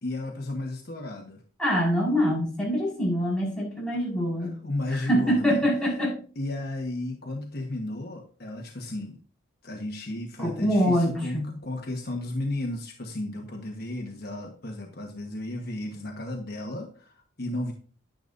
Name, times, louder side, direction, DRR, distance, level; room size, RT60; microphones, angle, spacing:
voice 1, 0.0-1.4 4.4-5.6 6.4-9.2 9.6-17.7, left 1 dB, 50° left, 2 dB, 1.3 m, -34 dB
voice 2, 1.6-4.5 4.9-6.2 10.4-11.5, equal, 5° left, -5 dB, 5.2 m, -25 dB
10.5 x 10.0 x 2.6 m, 0.40 s
head